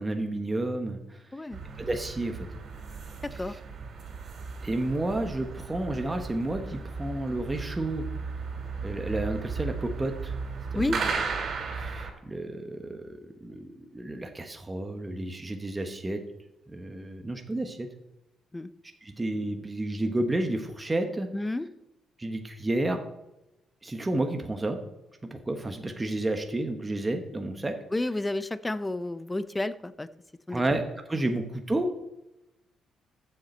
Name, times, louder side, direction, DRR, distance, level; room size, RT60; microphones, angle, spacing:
voice 1, 0.0-1.2 1.8-2.5 3.3-3.6 4.6-8.0 8.8-10.4 10.7-11.1 11.7-16.2 16.7-17.9 19.0-21.3 22.2-23.0 23.8-24.8 25.2-27.8 30.5-31.9, right 1 dB, 20° right, 5 dB, 1.1 m, -31 dB
sound 1, 1.5-12.1, right 5 dB, 55° right, 2.8 m, -35 dB
voice 2, 3.2-3.6 10.7-11.0 18.5-18.7 21.3-21.7 27.9-30.1 30.5-30.6, left 2 dB, 15° left, 14 dB, 0.5 m, -31 dB
14.5 x 6.8 x 4.4 m, 0.94 s
cardioid pair, 90°, 0 cm